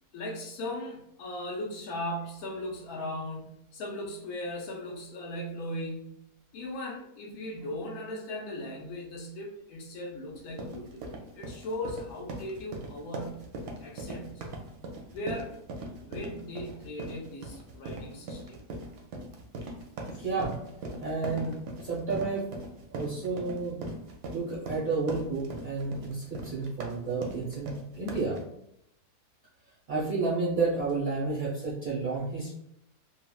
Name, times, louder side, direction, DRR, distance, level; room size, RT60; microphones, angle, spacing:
voice 1, 0.1-6.2 6.5-13.5 13.8-14.4 15.1-15.5 16.0-18.6 20.1-20.2, left 1 dB, 75° left, -1 dB, 1.1 m, -38 dB
sound 1, 10.4-28.4, right 2 dB, 85° right, 1.1 m, -40 dB
voice 2, 20.2-20.6 21.0-21.5 21.8-22.5 22.9-23.8 24.3-28.4 29.9-32.6, right 3 dB, 55° right, -6 dB, 0.5 m, -31 dB
3.6 x 2.1 x 2.2 m, 0.79 s
omnidirectional pair, 1.7 m